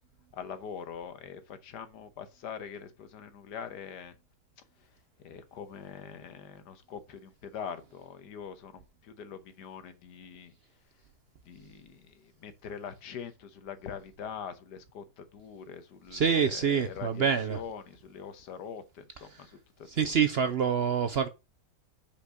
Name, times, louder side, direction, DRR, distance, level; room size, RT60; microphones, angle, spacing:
voice 1, 0.3-4.2 4.8-4.9 5.2-10.5 11.4-20.2, left 7 dB, 85° left, 1.6 m, -43 dB
voice 2, 16.1-17.6 19.9-21.3, right 7 dB, 60° right, 0.7 m, -26 dB
5.4 x 5.1 x 6.2 m
omnidirectional pair, 1.8 m